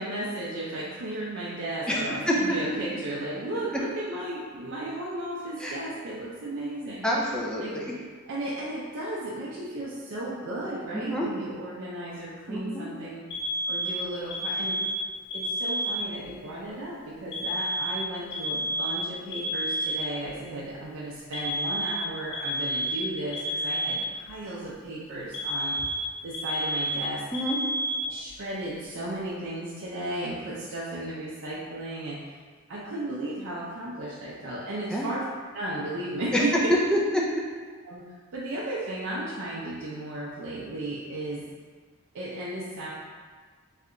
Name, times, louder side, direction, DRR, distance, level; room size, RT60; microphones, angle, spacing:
voice 1, 0.0-7.1 7.6-7.8 8.3-13.2 13.7-14.8 15.3-25.8 26.2-27.2 28.0-32.2 32.7-35.2 35.5-36.5 37.8-38.0 38.3-41.4 42.1-42.9, right 1 dB, 65° right, -7 dB, 0.5 m, -35 dB
voice 2, 1.9-2.3 5.6-5.7 7.0-7.9 10.9-11.3 12.5-12.9 27.3-27.6 34.9-35.1 36.3-36.4 36.7-37.2, equal, 5° left, -4 dB, 0.3 m, -27 dB
Alarm, 13.3-16.3 17.3-20.3 21.3-24.3 25.3-28.3, right 1 dB, 55° left, 0.5 m, -30 dB
3.2 x 2.7 x 2.5 m, 1.5 s
head